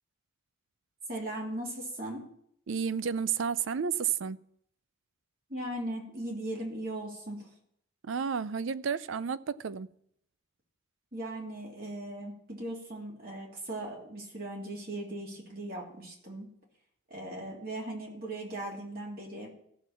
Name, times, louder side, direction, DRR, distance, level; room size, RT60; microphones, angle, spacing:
voice 1, 1.1-2.2 5.5-7.5 11.1-16.5 17.1-19.5, right 1 dB, 45° right, 2.9 m, -38 dB
voice 2, 2.7-4.4 8.0-9.9, right 6 dB, 80° right, 0.5 m, -31 dB
14.0 x 6.1 x 7.2 m
head